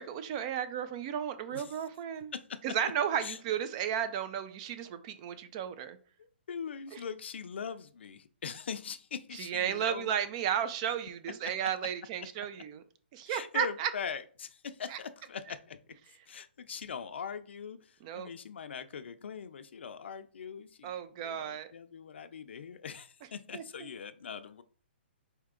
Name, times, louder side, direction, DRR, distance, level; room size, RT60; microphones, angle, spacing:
voice 1, 0.0-2.3 2.6-6.0 6.9-7.0 9.4-12.8 13.1-13.9 14.9-15.0 18.0-18.3 20.8-21.7 23.5-23.6, right 9 dB, 30° right, 0.5 m, -33 dB
voice 2, 6.2-10.1 13.3-15.8 16.3-24.6, left 6 dB, 75° left, 0.5 m, -42 dB
4.4 x 2.8 x 3.7 m
hypercardioid pair, 150°, 6 cm